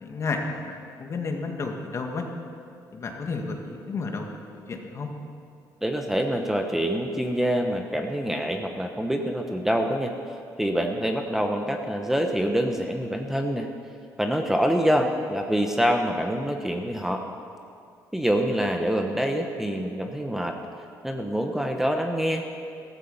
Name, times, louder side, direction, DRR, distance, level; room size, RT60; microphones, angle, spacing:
voice 1, 0.0-2.2 2.9-4.3 4.5-5.1, left 4 dB, 40° left, 3 dB, 1.9 m, -32 dB
voice 2, 5.8-10.1 10.6-13.7 14.2-17.2 18.1-20.6 21.0-22.4, equal, 5° right, 3 dB, 1.0 m, -25 dB
15.0 x 14.0 x 5.5 m, 2.4 s
cardioid pair, 105°, 7 cm